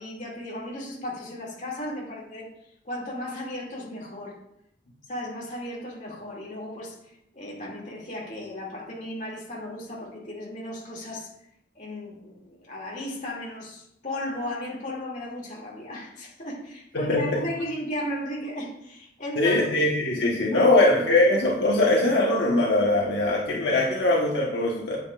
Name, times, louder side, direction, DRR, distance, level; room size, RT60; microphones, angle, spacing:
voice 1, 0.0-2.5 2.8-4.4 5.1-6.9 7.3-11.3 11.7-19.6 20.5-21.2, left 1 dB, 40° left, -4 dB, 2.5 m, -35 dB
voice 2, 16.9-17.4 19.4-25.0, left 2 dB, 75° left, -3 dB, 1.3 m, -21 dB
9.4 x 8.8 x 2.5 m, 0.77 s
head